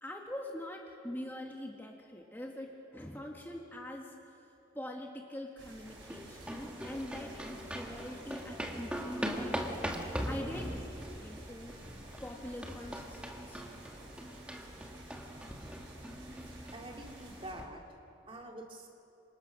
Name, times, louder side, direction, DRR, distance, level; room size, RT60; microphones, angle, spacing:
voice 1, 0.0-4.4 4.7-9.9 10.2-11.8 12.2-13.6, left 1 dB, 10° left, 0 dB, 1.5 m, -44 dB
sound 1, 5.6-17.5, right 1 dB, 85° right, 5.6 m, -53 dB
sound 2, 5.9-17.6, equal, 5° right, 1.8 m, -41 dB
voice 2, 16.3-17.8 18.3-18.9, right 1 dB, 30° right, 1 dB, 2.4 m, -47 dB
26.5 x 26.5 x 6.2 m, 3.0 s
head